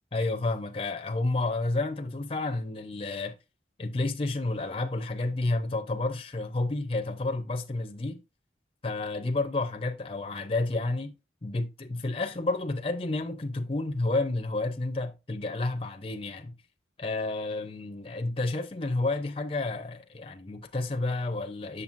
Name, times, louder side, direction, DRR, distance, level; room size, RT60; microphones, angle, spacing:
voice 1, 0.1-3.4 3.8-8.2 8.8-11.1 11.4-16.5 17.0-21.8, left 2 dB, 30° left, 0.6 m, -30 dB
7.2 x 6.7 x 2.6 m
head